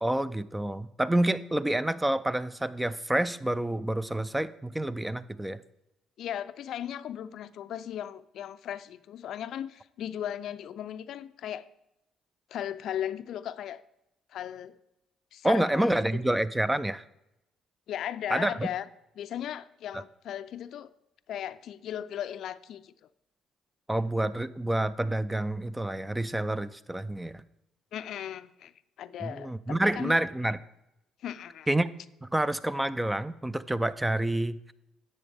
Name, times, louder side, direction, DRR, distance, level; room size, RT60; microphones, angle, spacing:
voice 1, 0.0-5.6 15.4-17.0 18.3-18.7 23.9-27.4 29.2-30.6 31.7-31.9 32.3-34.7, right 1 dB, 10° right, 16 dB, 0.4 m, -28 dB
voice 2, 6.2-11.7 12.5-13.8 14.3-14.8 15.3-15.9 17.9-18.8 19.2-20.9 21.3-22.9 27.9-28.7 29.0-30.2 31.2-31.7, left 10 dB, 65° left, 14 dB, 0.4 m, -37 dB
11.0 x 7.5 x 3.4 m, 0.87 s
supercardioid pair, 70°, 0 cm